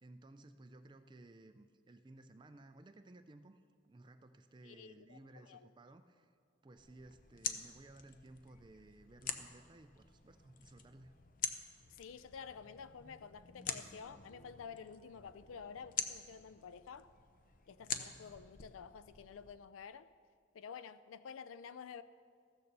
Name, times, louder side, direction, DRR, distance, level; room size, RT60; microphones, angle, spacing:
voice 1, 0.0-6.3 6.6-11.1, right 2 dB, 25° right, 0.3 m, -58 dB
voice 2, 4.6-5.7 11.9-17.1 17.7-20.1 20.5-22.0, left 6 dB, 85° left, 0.4 m, -50 dB
sound 1, 6.8-19.5, left 7 dB, 40° left, 0.6 m, -46 dB
15.0 x 6.8 x 6.7 m
head